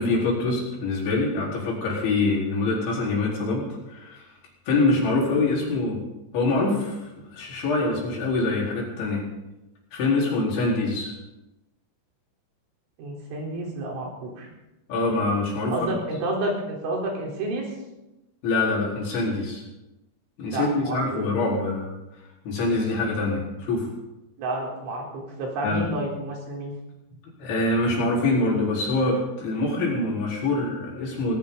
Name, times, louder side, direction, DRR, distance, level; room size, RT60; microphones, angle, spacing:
voice 1, 0.0-4.2 4.7-6.0 6.3-9.3 9.9-11.1 14.9-15.9 18.4-19.6 20.4-21.9 22.4-23.9 25.6-25.9 27.4-31.4, left 2 dB, 75° left, -4 dB, 6.8 m, -25 dB
voice 2, 13.0-14.5 15.7-17.7 20.5-21.2 24.4-26.7, right 2 dB, 85° right, -2 dB, 6.5 m, -30 dB
19.0 x 17.5 x 4.0 m, 0.96 s
omnidirectional pair, 5.3 m